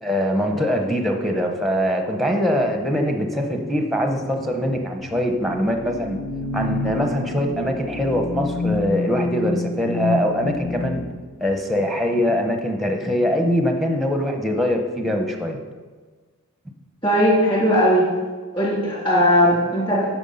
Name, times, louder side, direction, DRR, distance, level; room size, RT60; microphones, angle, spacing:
voice 1, 0.0-6.2 6.5-11.0 11.4-15.6, equal, ahead, 3 dB, 0.8 m, -23 dB
sound 1, 2.7-11.1, left 2 dB, 80° left, 1.9 m, -29 dB
voice 2, 17.0-18.0 18.5-20.1, equal, 20° left, -6 dB, 2.8 m, -18 dB
9.0 x 6.1 x 5.6 m, 1.4 s
head